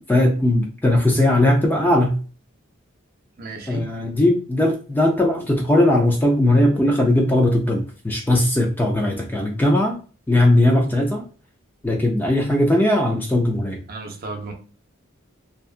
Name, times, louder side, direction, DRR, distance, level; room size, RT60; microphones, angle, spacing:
voice 1, 0.1-2.2 3.7-10.0 10.3-11.2 11.8-13.8, left 1 dB, 10° left, 0.3 m, -18 dB
voice 2, 3.4-3.8 13.9-14.5, right 2 dB, 45° right, 0.6 m, -33 dB
2.7 x 2.2 x 2.4 m
head